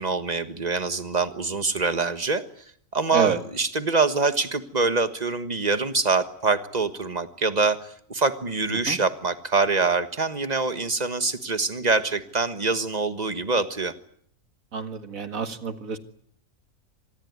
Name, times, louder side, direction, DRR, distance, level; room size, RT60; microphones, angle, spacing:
voice 1, 0.0-2.4 2.9-7.8 8.1-13.9, right 4 dB, 30° right, 11 dB, 1.6 m, -24 dB
voice 2, 14.7-16.0, right 6 dB, 90° right, 10 dB, 2.2 m, -28 dB
25.5 x 20.0 x 9.6 m, 0.65 s
omnidirectional pair, 1.4 m